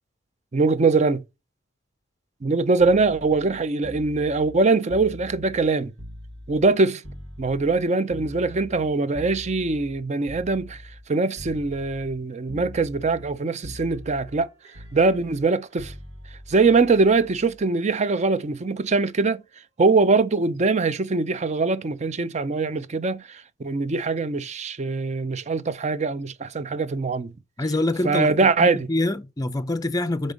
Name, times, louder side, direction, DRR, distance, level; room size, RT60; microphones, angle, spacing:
voice 1, 0.5-1.2 2.4-5.9 6.5-7.0 7.4-10.8 11.1-14.5 14.9-15.9 16.5-19.4 19.8-27.3 28.0-28.9, right 3 dB, 35° right, 0.5 m, -22 dB
sound 1, 2.8-6.7 7.0-11.1 11.4-12.2 12.5-13.4 13.6-17.6 18.8-19.1, left 1 dB, 65° right, 1.5 m, -42 dB
voice 2, 27.6-28.3 28.6-30.3, left 2 dB, 20° left, 0.5 m, -25 dB
5.4 x 5.1 x 5.0 m
head